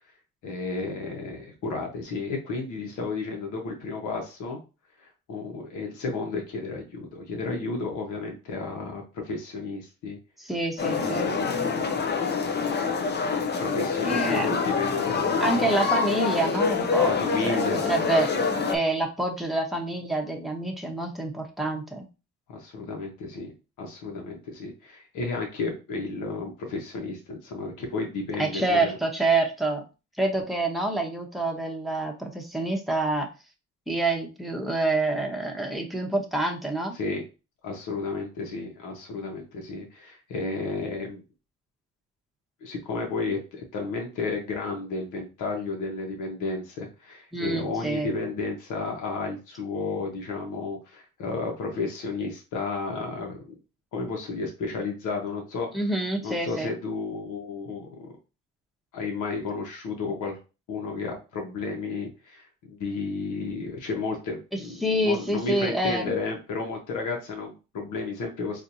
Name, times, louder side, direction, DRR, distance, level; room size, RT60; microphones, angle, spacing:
voice 1, 0.4-4.6 5.3-10.2 11.0-12.1 13.6-15.6 17.2-17.9 22.5-23.5 23.8-28.9 36.9-37.2 37.6-41.2 42.6-53.5 53.9-55.7 56.2-58.1 58.9-60.4 60.7-68.6, left 3 dB, 80° left, 1 dB, 1.1 m, -32 dB
voice 2, 10.4-11.3 14.0-14.5 15.4-17.1 17.4-22.1 28.4-29.8 30.2-33.3 33.9-36.9 47.3-48.1 55.7-56.7 64.5-66.1, right 2 dB, ahead, 0 dB, 1.0 m, -27 dB
sound 1, 10.8-18.8, left 5 dB, 35° left, 0.6 m, -26 dB
4.4 x 2.7 x 2.7 m, 0.31 s
cardioid pair, 90°, 30 cm